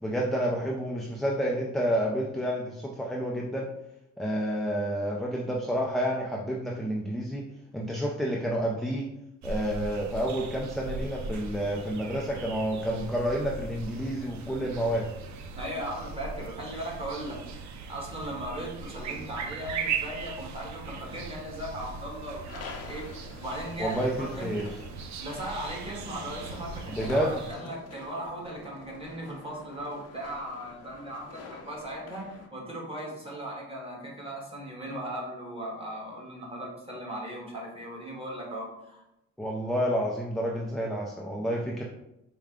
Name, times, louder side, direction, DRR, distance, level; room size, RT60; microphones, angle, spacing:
voice 1, 0.0-3.7 4.2-7.4 7.7-9.1 9.4-15.1 23.8-24.6 26.9-27.3 39.4-41.8, equal, ahead, -2 dB, 0.5 m, -29 dB
Forrest Ambience, 9.4-27.5, right 5 dB, 65° right, 0.5 m, -39 dB
voice 2, 15.6-23.0 23.4-24.5 25.2-39.0, right 1 dB, 20° right, -2 dB, 1.5 m, -38 dB
sound 1, 22.5-32.5, left 5 dB, 55° left, 0.7 m, -47 dB
4.6 x 2.2 x 3.6 m, 0.85 s
cardioid pair, 90°, 30 cm